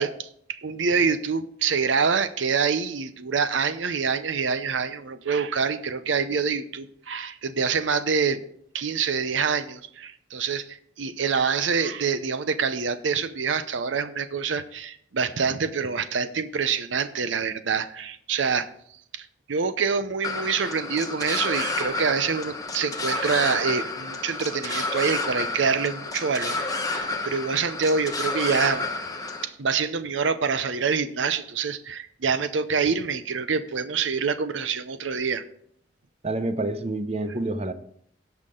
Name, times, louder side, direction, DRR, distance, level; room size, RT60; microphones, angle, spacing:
voice 1, 0.0-8.4 8.7-18.7 19.1-28.8 29.4-35.4, right 5 dB, 80° right, 12 dB, 0.7 m, -26 dB
sound 1, 20.2-29.4, left 3 dB, 20° left, 1.1 m, -30 dB
voice 2, 36.2-37.7, right 2 dB, 35° right, 10 dB, 0.8 m, -28 dB
17.5 x 5.9 x 3.8 m, 0.66 s
head